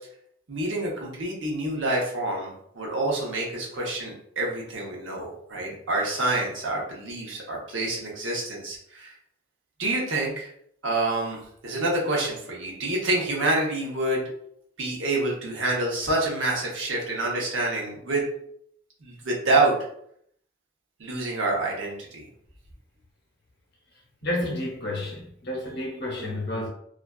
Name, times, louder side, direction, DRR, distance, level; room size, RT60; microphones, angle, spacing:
voice 1, 0.5-9.1 9.8-10.5 10.8-14.3 14.8-18.3 19.0-19.9 21.0-22.3, right 2 dB, 70° right, 0.8 m, -27 dB
voice 2, 24.2-26.7, left 1 dB, 55° left, 0.7 m, -30 dB
2.4 x 2.2 x 2.3 m
head